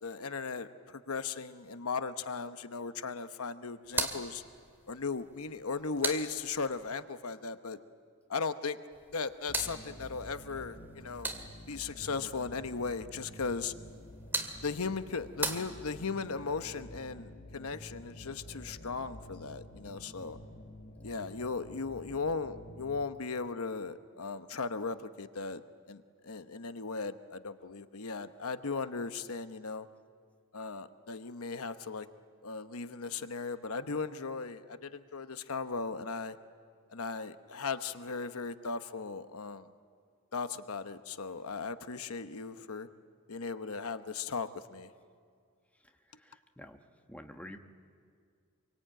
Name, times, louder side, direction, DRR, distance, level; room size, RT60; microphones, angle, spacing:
voice 1, 0.0-4.4 4.9-7.8 8.3-8.8 9.1-11.3 11.7-13.7 14.6-20.4 21.0-25.6 25.9-29.9 30.5-32.1 32.4-36.4 36.9-39.7 40.3-42.9 43.3-44.9, left 4 dB, 80° left, 10 dB, 1.0 m, -37 dB
sound 1, 3.8-6.9 8.9-11.9 13.8-16.3, right 2 dB, 10° right, 2.1 m, -40 dB
sound 2, 9.5-23.0, left 1 dB, 40° left, 2.3 m, -50 dB
voice 2, 46.2-46.8 47.1-47.6, left 1 dB, 5° left, 4 dB, 1.3 m, -48 dB
26.5 x 23.5 x 9.0 m, 2.2 s
head